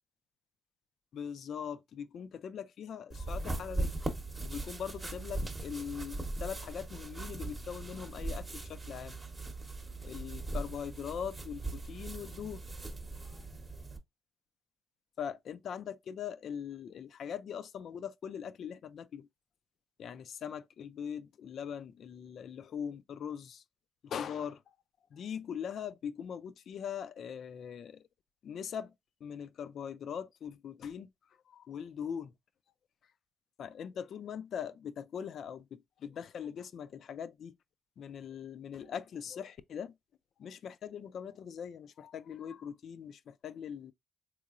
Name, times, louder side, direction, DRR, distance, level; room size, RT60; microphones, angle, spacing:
voice 1, 1.1-3.9 4.4-9.2 10.0-12.7 13.3-13.4 15.2-19.3 20.0-23.6 24.0-24.6 25.1-28.0 28.4-28.9 29.2-31.1 31.5-32.3 33.6-37.5 38.0-39.9 40.4-43.9, left 8 dB, 65° left, 0.3 m, -41 dB
sound 1, 3.1-14.0, right 2 dB, 25° right, 0.8 m, -39 dB
3.7 x 3.0 x 2.4 m
cardioid pair, 90°, 0 cm